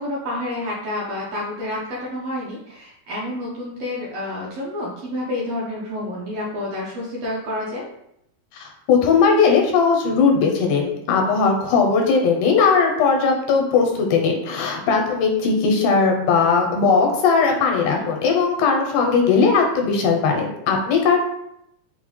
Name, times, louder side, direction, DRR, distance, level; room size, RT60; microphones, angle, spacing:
voice 1, 0.0-7.9 17.8-18.0, left 1 dB, 70° right, -5 dB, 1.6 m, -29 dB
voice 2, 8.9-21.2, left 5 dB, 90° left, 2 dB, 2.1 m, -18 dB
5.4 x 2.1 x 3.1 m, 0.79 s
omnidirectional pair, 3.5 m